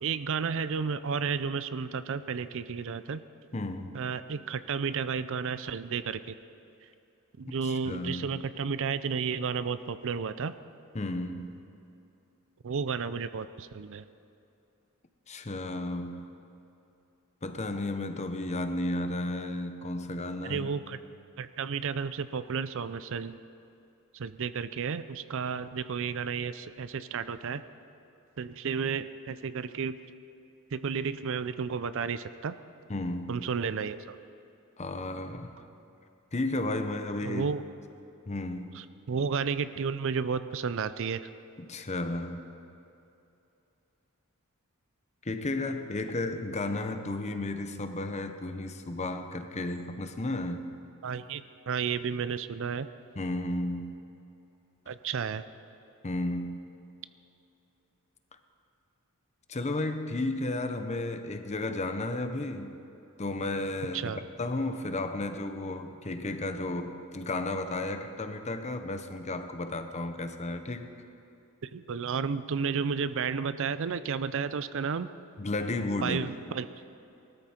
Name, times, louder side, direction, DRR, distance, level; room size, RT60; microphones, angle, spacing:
voice 1, 0.0-3.2 3.9-6.4 7.4-10.5 12.6-14.0 20.4-21.0 21.4-23.4 24.1-27.6 28.4-30.0 30.7-32.5 33.3-34.2 37.2-37.6 38.7-41.3 51.0-52.9 54.9-55.4 63.9-64.2 71.6-75.1 76.0-76.7, right 6 dB, 65° right, 13 dB, 0.5 m, -32 dB
voice 2, 3.5-4.0 7.6-8.4 10.9-11.6 15.3-16.3 17.4-20.7 32.9-33.5 34.8-35.6 36.3-37.5 38.3-38.8 41.6-42.5 45.2-50.6 53.2-54.0 56.0-56.6 59.5-62.7 63.2-64.1 64.4-70.9 75.4-76.3, left 2 dB, 30° left, 8 dB, 0.8 m, -33 dB
19.5 x 13.0 x 4.4 m, 2.8 s
head